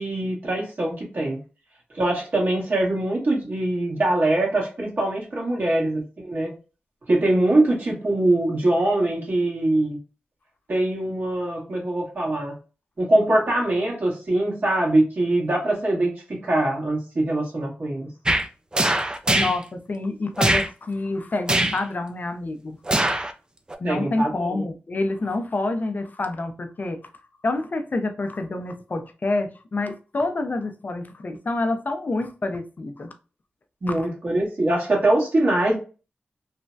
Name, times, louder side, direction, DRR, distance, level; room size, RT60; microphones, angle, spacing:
voice 1, 0.0-1.4 1.9-6.5 7.1-10.0 10.7-12.5 13.0-18.1 23.8-24.6 33.8-35.8, right 1 dB, 60° right, 1.5 m, -23 dB
sound 1, 18.3-18.5 18.7-19.6 20.4-20.7 21.5-21.8 22.9-23.3 23.7-23.8, right 1 dB, 20° right, 0.4 m, -21 dB
voice 2, 19.3-22.8 23.8-27.0 27.4-33.1 33.9-34.0, left 2 dB, 50° left, 0.4 m, -27 dB
3.1 x 2.1 x 2.5 m
cardioid pair, 50°, 4 cm